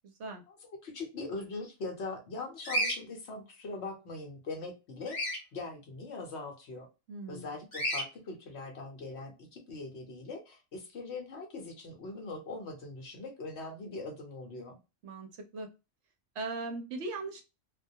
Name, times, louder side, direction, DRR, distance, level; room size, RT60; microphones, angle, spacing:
voice 1, 0.5-6.9 7.3-14.8, left 3 dB, 60° left, 3 dB, 0.9 m, -41 dB
Bird vocalization bird call bird song, 2.6-3.0 5.1-5.4 7.7-8.0, equal, 30° left, 0.9 m, -31 dB
voice 2, 7.1-7.5 15.0-15.7 16.3-17.4, right 3 dB, 65° right, 5 dB, 0.8 m, -39 dB
2.2 x 2.2 x 2.6 m, 0.28 s
omnidirectional pair, 1.4 m